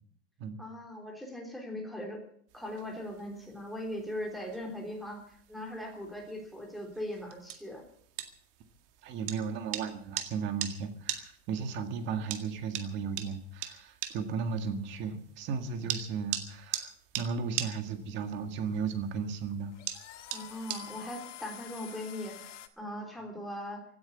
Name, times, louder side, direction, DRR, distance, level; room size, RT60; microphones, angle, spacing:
voice 1, 0.6-2.2 2.5-5.2 5.5-7.8 20.3-23.8, left 1 dB, ahead, 0 dB, 3.4 m, -40 dB
sound 1, 2.5-21.1, right 12 dB, 50° right, 2.0 m, -42 dB
voice 2, 9.0-19.7, right 5 dB, 30° right, 7 dB, 1.8 m, -35 dB
sound 2, 18.1-22.7, left 12 dB, 90° left, 1.8 m, -48 dB
16.5 x 9.6 x 8.5 m, 0.64 s
supercardioid pair, 160°, 36 cm